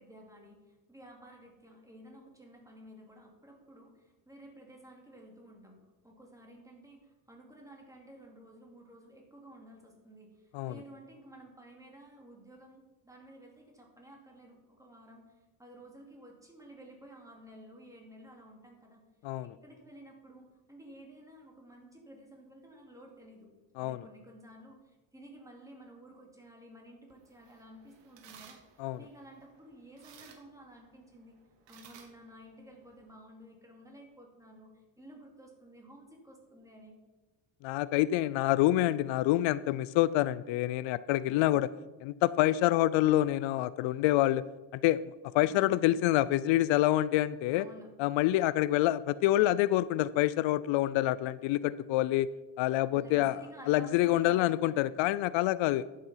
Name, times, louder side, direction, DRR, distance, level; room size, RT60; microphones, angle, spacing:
voice 1, 0.0-19.0 19.4-23.5 23.8-31.4 31.7-37.0 41.3-41.7 45.4-45.9 47.5-47.9 52.9-54.8, right 1 dB, 5° right, 0 dB, 2.6 m, -53 dB
voice 2, 19.2-19.5 23.8-24.0 28.8-29.0 37.6-41.7 42.0-44.4 44.7-45.0 45.3-47.7 48.0-52.3 52.6-55.8, left 15 dB, 80° left, 17 dB, 0.5 m, -27 dB
sound 1, 27.1-33.2, right 7 dB, 65° right, 1.6 m, -59 dB
10.5 x 7.6 x 5.7 m, 1.2 s
cardioid pair, 125°, 45 cm